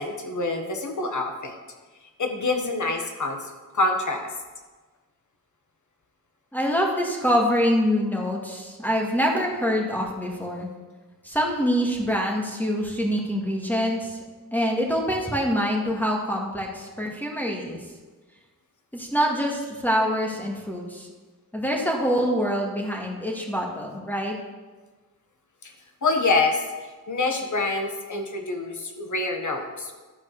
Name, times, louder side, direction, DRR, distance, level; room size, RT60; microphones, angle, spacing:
voice 1, 0.0-1.6 2.2-3.4 3.7-4.3 25.6-25.7 26.0-26.6 27.1-29.9, left 3 dB, 60° left, 4 dB, 1.4 m, -26 dB
voice 2, 6.5-10.7 11.2-14.2 14.5-17.8 18.9-21.1 21.5-24.4, equal, 5° left, -1 dB, 1.9 m, -25 dB
12.0 x 4.7 x 6.7 m, 1.3 s
wide cardioid pair, 95°, 34 cm